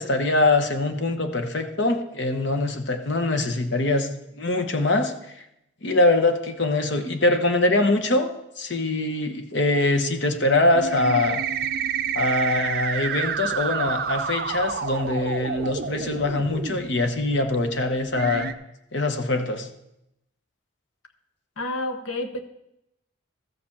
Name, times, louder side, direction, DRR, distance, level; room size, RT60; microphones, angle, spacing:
voice 1, 0.0-5.4 5.8-8.3 8.6-11.4 12.1-18.5 18.9-19.7, left 2 dB, 60° left, 7 dB, 1.1 m, -23 dB
sound 1, 10.7-16.8 17.5-17.6 18.2-18.5, right 7 dB, 50° right, 0.5 m, -29 dB
voice 2, 21.6-22.4, left 2 dB, 80° left, 5 dB, 1.2 m, -29 dB
13.5 x 5.0 x 7.2 m, 0.84 s
head